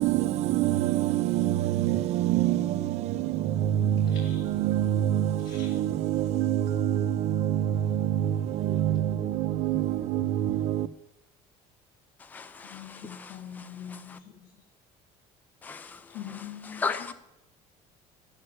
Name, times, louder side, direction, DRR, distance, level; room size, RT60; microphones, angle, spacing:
voice 1, 0.0-10.9, right 12 dB, 50° right, 0.7 m, -26 dB
voice 2, 4.1-4.4 5.4-5.8 12.6-14.6 16.1-17.1, left 9 dB, 70° left, 1.9 m, -43 dB
voice 3, 12.3-14.2 15.6-16.0 16.7-17.1, left 4 dB, 10° left, 0.5 m, -36 dB
11.5 x 8.3 x 9.8 m
cardioid pair, 175°, 14 cm